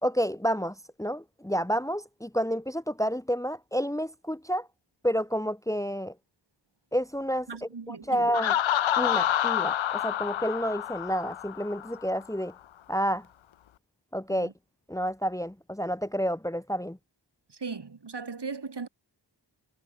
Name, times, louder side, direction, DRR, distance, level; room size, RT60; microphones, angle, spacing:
voice 1, 0.0-4.7 5.0-6.1 6.9-7.5 7.9-8.5 9.0-12.5 12.9-13.3 14.1-14.5 14.9-17.0, equal, 5° left, 1.5 m, -29 dB
voice 2, 7.5-8.3 14.3-14.5 17.5-18.9, right 4 dB, 60° right, 4.5 m, -38 dB
Laughter, 8.3-12.0, left 11 dB, 90° left, 0.7 m, -28 dB
wide cardioid pair, 75°, 45 cm